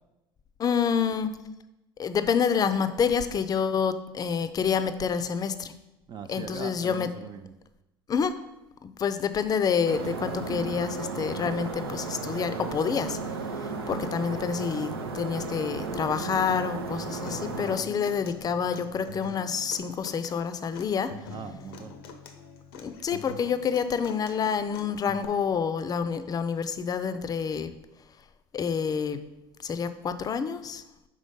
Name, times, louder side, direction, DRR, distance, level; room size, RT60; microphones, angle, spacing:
voice 1, 0.6-1.4 2.0-5.7 6.3-7.1 8.1-8.4 8.8-13.2 13.6-21.2 22.7-27.7 28.5-29.2 29.6-30.8, left 6 dB, 30° left, 11 dB, 0.5 m, -28 dB
voice 2, 6.1-7.5 21.3-21.9, right 6 dB, 35° right, 8 dB, 0.4 m, -40 dB
sound 1, 9.8-17.8, right 4 dB, 85° right, 0.6 m, -34 dB
Human voice / Acoustic guitar, 17.3-25.2, left 4 dB, 75° left, 0.6 m, -44 dB
5.0 x 3.7 x 5.2 m, 0.97 s
hypercardioid pair, 65°, 13 cm